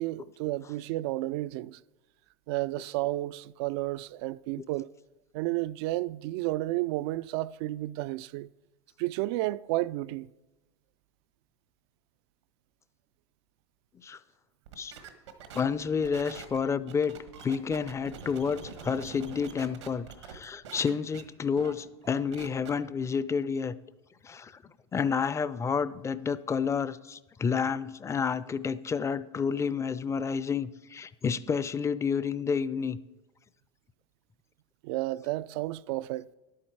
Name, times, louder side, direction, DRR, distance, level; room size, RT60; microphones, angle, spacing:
voice 1, 0.0-1.8 2.5-4.9 5.3-8.5 9.0-10.3 34.8-36.3, right 17 dB, 65° right, 0.4 m, -32 dB
sound 1, 14.7-20.4 20.6-21.2 21.6-21.7 22.0-22.7, right 7 dB, 90° right, 1.4 m, -45 dB
voice 2, 15.5-17.2 17.4-23.7 24.2-24.6 24.9-33.0, left 6 dB, 20° left, 0.5 m, -30 dB
11.0 x 8.7 x 4.6 m
hypercardioid pair, 100°, 14 cm